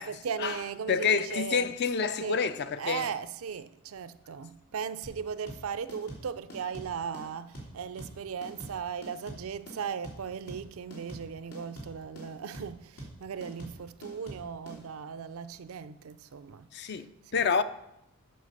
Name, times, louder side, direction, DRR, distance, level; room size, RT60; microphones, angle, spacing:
voice 1, 0.0-1.7 2.2-2.4 2.8-17.6, right 6 dB, 65° right, 0.4 m, -37 dB
voice 2, 0.9-3.1 16.7-17.6, left 6 dB, 50° left, 0.4 m, -28 dB
sound 1, 5.0-14.8, right 1 dB, 85° left, 2.7 m, -44 dB
7.8 x 5.7 x 6.6 m
head